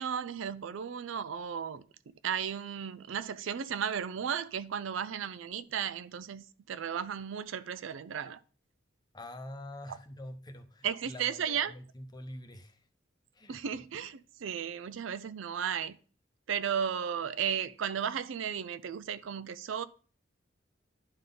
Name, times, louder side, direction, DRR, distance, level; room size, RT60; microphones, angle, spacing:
voice 1, 0.0-1.8 2.2-8.4 9.9-10.0 10.8-11.7 13.5-16.0 16.5-19.8, right 8 dB, 75° right, 0.4 m, -34 dB
voice 2, 9.1-12.9 13.3-13.8, left 1 dB, 20° left, 0.8 m, -46 dB
10.5 x 3.7 x 3.8 m
head